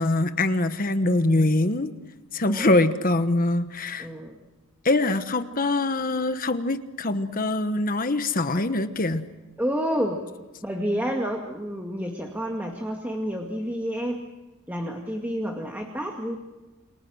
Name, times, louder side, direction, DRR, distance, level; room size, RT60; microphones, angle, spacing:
voice 1, 0.0-1.9 2.3-4.1 4.8-9.2, left 2 dB, 40° left, 10 dB, 1.2 m, -23 dB
voice 2, 2.5-2.8 4.0-4.4 9.6-10.2 10.6-14.3 14.7-16.4, equal, 10° right, 1 dB, 2.1 m, -29 dB
29.0 x 25.0 x 6.4 m, 1.1 s
head